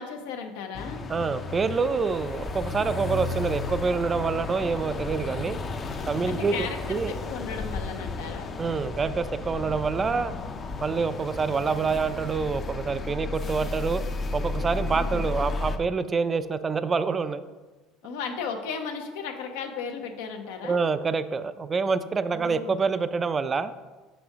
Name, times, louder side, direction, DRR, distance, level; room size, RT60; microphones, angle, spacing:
voice 1, 0.0-1.0 6.2-6.8 7.1-8.5 14.9-15.3 18.0-20.8 22.3-22.8, left 6 dB, 85° left, 5 dB, 0.7 m, -35 dB
sound 1, 0.7-15.8, left 3 dB, 35° left, 0.5 m, -33 dB
voice 2, 1.1-5.6 6.1-6.6 6.9-7.1 8.6-10.3 10.8-14.0 14.3-17.4 20.6-23.7, right 5 dB, 30° right, 12 dB, 0.3 m, -26 dB
5.4 x 5.0 x 3.5 m, 1.3 s
supercardioid pair, 100°, 0 cm